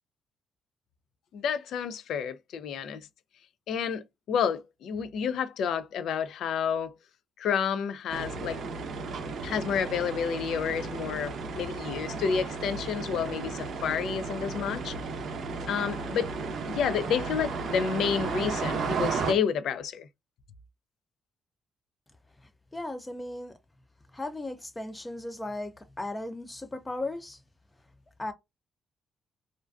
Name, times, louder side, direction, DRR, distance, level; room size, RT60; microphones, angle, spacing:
voice 1, 1.3-3.0 3.7-6.9 7.4-8.6 9.4-14.9 15.7-16.3 16.7-20.1, left 7 dB, 75° left, 0.3 m, -30 dB
sound 1, 8.1-19.3, right 4 dB, 60° right, 0.5 m, -34 dB
voice 2, 22.4-23.6 24.1-27.4 28.2-28.3, left 2 dB, 15° left, 0.5 m, -36 dB
2.4 x 2.2 x 2.3 m
cardioid pair, 90°, 0 cm